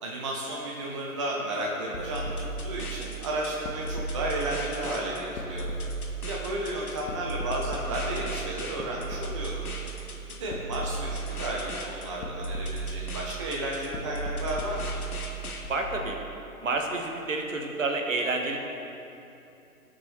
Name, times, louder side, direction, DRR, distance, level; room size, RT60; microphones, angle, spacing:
voice 1, 0.0-5.7 6.3-9.7 10.3-15.0, right 1 dB, 20° right, -3 dB, 0.6 m, -33 dB
sound 1, 1.9-15.6, right 2 dB, 70° left, 1.5 m, -35 dB
voice 2, 15.7-16.2 16.6-18.6, right 3 dB, 55° right, 2 dB, 1.5 m, -29 dB
18.0 x 6.4 x 3.1 m, 2.8 s
figure-of-eight pair, 140°, 45 cm